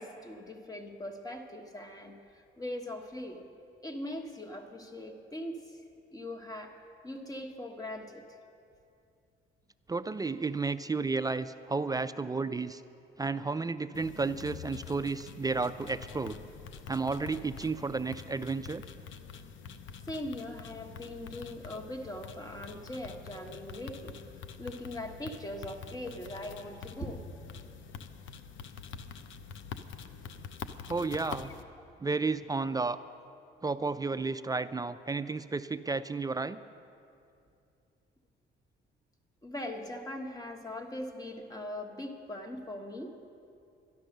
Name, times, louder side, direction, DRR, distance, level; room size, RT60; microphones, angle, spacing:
voice 1, 0.0-3.4 3.8-5.8 6.1-6.8 7.0-8.2 20.1-24.1 24.6-27.2 31.4-31.5 39.4-43.1, left 1 dB, 20° left, 4 dB, 1.4 m, -41 dB
voice 2, 9.9-12.8 13.2-16.4 16.9-18.8 30.9-31.5 32.0-33.0 33.6-36.6, right 4 dB, 20° right, 12 dB, 0.3 m, -32 dB
sound 1, 13.9-31.6, left 6 dB, 75° left, 0.7 m, -46 dB
12.0 x 11.0 x 6.6 m, 2.5 s
cardioid pair, 90°, 20 cm